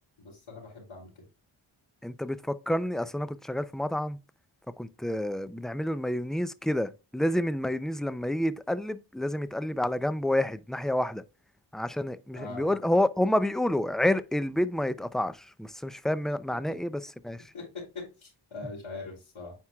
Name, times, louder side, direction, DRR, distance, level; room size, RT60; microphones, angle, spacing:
voice 1, 0.2-1.2 12.3-12.7 16.5-16.8 17.5-19.5, left 3 dB, 80° left, 3.1 m, -42 dB
voice 2, 2.0-4.2 4.8-11.2 11.7-17.4, left 1 dB, ahead, 0.4 m, -29 dB
9.5 x 4.5 x 2.3 m
cardioid pair, 60°, 50 cm